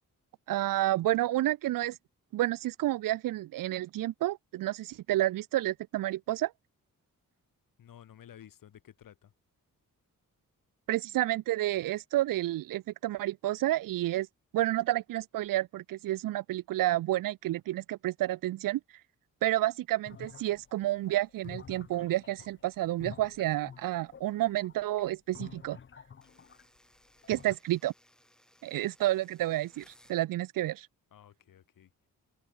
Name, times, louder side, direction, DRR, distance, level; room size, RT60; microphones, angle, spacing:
voice 1, 0.5-2.0 2.3-6.5 10.9-14.3 14.5-18.8 19.4-25.8 27.3-27.9 28.6-29.8 30.1-30.9, right 15 dB, 75° right, 0.5 m, -30 dB
voice 2, 7.8-9.3 31.1-31.9, left 10 dB, 75° left, 6.7 m, -53 dB
sound 1, 20.1-26.8 27.1-27.6, left 6 dB, 35° left, 1.5 m, -49 dB
sound 2, 26.2-30.2, equal, ahead, 5.7 m, -63 dB
open air
wide cardioid pair, 165°, 33 cm